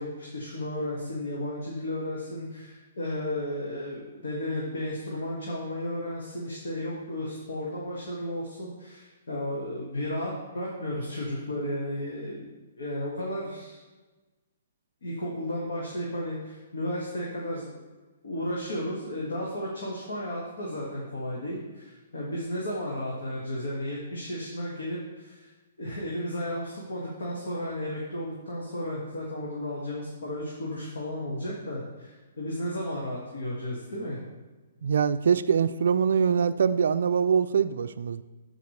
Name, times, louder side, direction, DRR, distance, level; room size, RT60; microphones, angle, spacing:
voice 1, 0.0-13.8 15.0-17.8 18.2-25.5 25.8-34.2, left 1 dB, 85° left, -4 dB, 1.9 m, -33 dB
voice 2, 34.8-38.2, right 7 dB, 70° right, 9 dB, 0.3 m, -23 dB
13.5 x 5.1 x 3.2 m, 1.2 s
hypercardioid pair, 145°, 0 cm